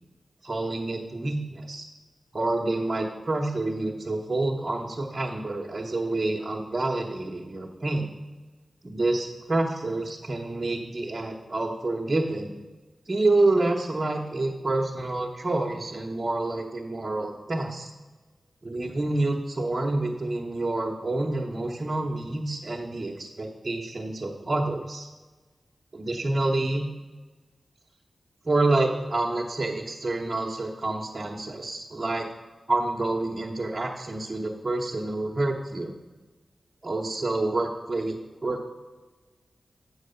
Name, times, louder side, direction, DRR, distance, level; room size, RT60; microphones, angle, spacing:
voice 1, 0.4-1.9 2.3-8.1 8.8-12.6 13.0-17.9 18.6-25.1 25.9-26.9 28.4-32.3 32.7-35.9 36.8-38.2 38.4-38.7, right 2 dB, 40° right, -2 dB, 1.0 m, -28 dB
8.4 x 4.7 x 6.8 m, 1.3 s
cardioid pair, 60°, 0 cm